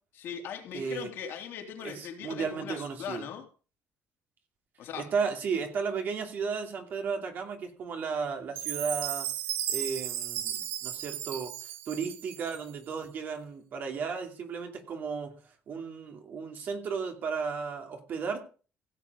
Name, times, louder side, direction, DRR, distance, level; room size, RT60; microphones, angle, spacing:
voice 1, 0.2-3.5 4.8-5.1, left 8 dB, 65° left, 2 dB, 3.2 m, -39 dB
voice 2, 0.7-1.1 1.8-3.3 4.9-9.3 9.7-11.5 11.9-15.4 15.7-18.4, right 5 dB, 50° right, 4 dB, 2.7 m, -34 dB
Chime, 8.6-12.8, right 11 dB, 80° right, 1.3 m, -35 dB
16.0 x 7.4 x 5.3 m, 0.37 s
cardioid pair, 130°, 4 cm